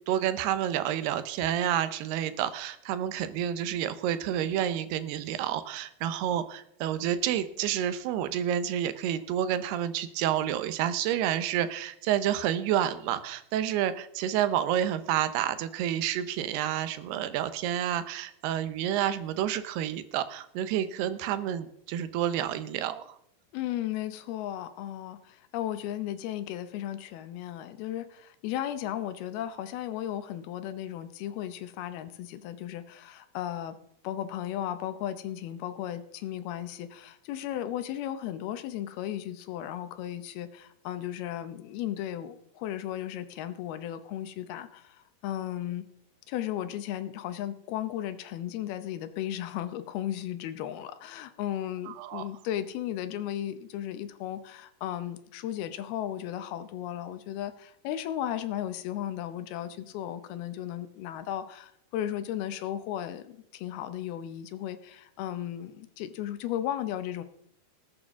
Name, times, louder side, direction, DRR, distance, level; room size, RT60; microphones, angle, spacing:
voice 1, 0.1-23.2 51.9-52.2, right 10 dB, 85° right, 12 dB, 2.8 m, -29 dB
voice 2, 23.5-33.8 34.0-45.9 46.3-67.2, left 11 dB, 80° left, 11 dB, 2.7 m, -35 dB
19.5 x 8.8 x 3.6 m, 0.74 s
omnidirectional pair, 4.6 m